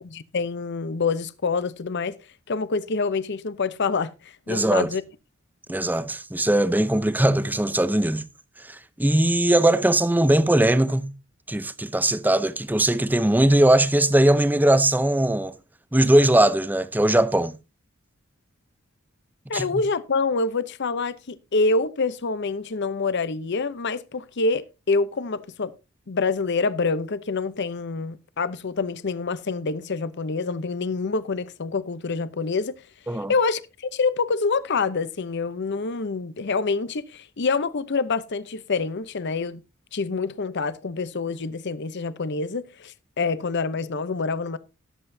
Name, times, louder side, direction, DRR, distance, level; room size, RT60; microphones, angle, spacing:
voice 1, 0.0-2.2 2.5-5.0 19.5-25.7 26.1-32.7 33.3-39.6 39.9-44.6, left 4 dB, 55° left, 0.7 m, -26 dB
voice 2, 4.5-4.9 5.7-8.2 8.7-11.1 11.5-15.5 15.9-17.6 19.5-19.8 33.1-33.3, right 1 dB, 10° right, 0.6 m, -20 dB
19.0 x 7.8 x 2.7 m
head